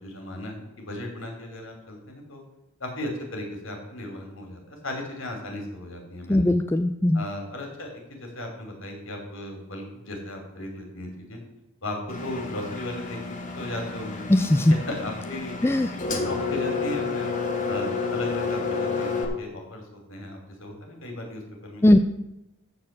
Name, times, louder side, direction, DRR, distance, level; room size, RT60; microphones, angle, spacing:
voice 1, 0.0-2.4 2.8-6.5 7.1-11.4 11.8-13.2 13.4-14.2 14.7-15.8 16.1-17.3 17.7-22.0, left 1 dB, 65° left, 3 dB, 2.9 m, -36 dB
voice 2, 6.3-7.2 14.3-14.7 15.6-15.9 21.8-22.0, left 1 dB, 10° left, 8 dB, 0.4 m, -19 dB
Engine, 12.1-19.2, left 4 dB, 35° left, 1.6 m, -30 dB
13.5 x 4.6 x 7.3 m, 0.88 s
head